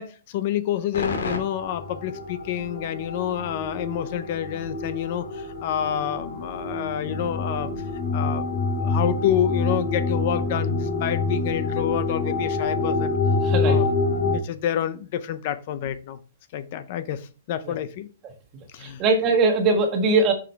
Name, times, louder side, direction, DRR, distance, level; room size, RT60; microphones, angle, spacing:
voice 1, 0.0-7.7 8.1-13.1 13.6-13.9 14.2-16.2 16.5-18.1 18.7-19.0, left 10 dB, 45° left, 13 dB, 0.6 m, -28 dB
sound 1, 0.9-14.4, left 3 dB, 80° left, 2.7 m, -27 dB
voice 2, 13.4-13.8 17.6-17.7 18.8-20.3, right 3 dB, 25° right, 4 dB, 1.5 m, -21 dB
7.5 x 6.2 x 3.3 m, 0.36 s
hypercardioid pair, 155°, 0 cm